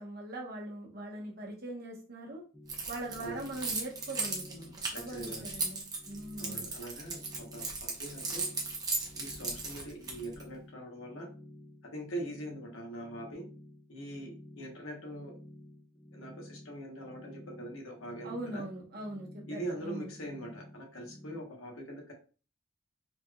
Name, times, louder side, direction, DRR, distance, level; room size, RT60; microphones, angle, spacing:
voice 1, 0.0-2.4 2.9-6.7 18.2-20.1, right 1 dB, 50° right, -1 dB, 1.1 m, -41 dB
sound 1, 2.5-21.4, left 1 dB, 10° left, 0.5 m, -52 dB
Keys jangling, 2.7-10.4, right 3 dB, 20° right, 0.8 m, -36 dB
voice 2, 4.9-5.5 6.4-8.5 9.1-11.3 11.9-13.5 13.9-15.3 16.1-18.6 19.5-22.1, right 1 dB, 85° left, 0 dB, 1.2 m, -42 dB
4.2 x 3.3 x 2.4 m, 0.37 s
head